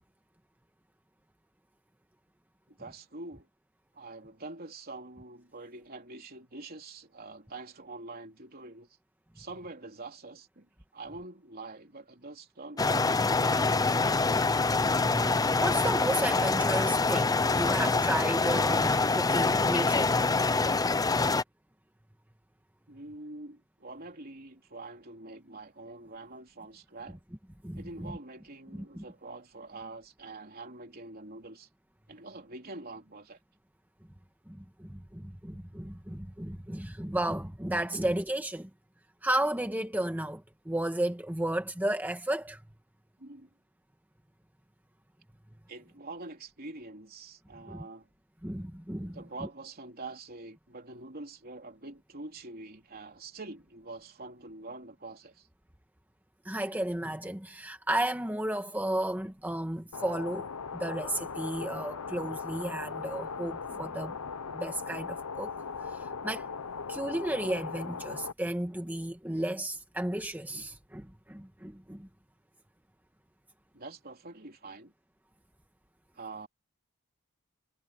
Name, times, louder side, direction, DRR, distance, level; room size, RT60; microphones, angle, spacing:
voice 1, 2.7-3.5 3.9-8.9 9.3-14.0 22.9-27.2 27.8-31.7 32.1-33.4 43.2-43.5 45.7-48.1 49.0-55.5 73.7-74.9 76.1-76.5, right 2 dB, 45° right, 3.4 m, -45 dB
sound 1, 12.8-21.4, left 3 dB, 15° left, 0.5 m, -25 dB
voice 2, 14.9-20.1 27.6-28.1 28.9-29.0 34.5-38.7 39.2-42.6 47.7-47.8 48.4-49.2 56.4-60.5 60.7-64.2 64.5-65.5 65.9-66.5 66.9-72.1, right 1 dB, 10° right, 1.6 m, -33 dB
sound 2, 59.9-68.3, left 5 dB, 80° left, 0.9 m, -38 dB
head